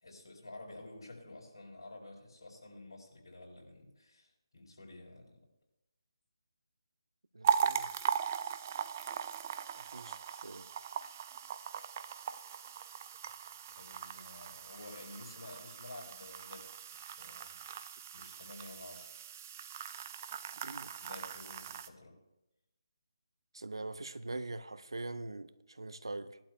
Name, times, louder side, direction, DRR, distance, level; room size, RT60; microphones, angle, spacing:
voice 1, 0.0-5.4 13.8-16.7 17.0-17.6 18.1-19.2 21.0-22.1, left 2 dB, 70° left, 3.9 m, -51 dB
voice 2, 7.3-7.9 9.7-10.7 14.2-14.3 20.6-20.9 23.5-26.4, right 2 dB, 80° right, 0.7 m, -43 dB
sound 1, 7.4-21.9, right 8 dB, 30° right, 0.4 m, -39 dB
18.0 x 11.5 x 2.2 m
figure-of-eight pair, 155°, 3 cm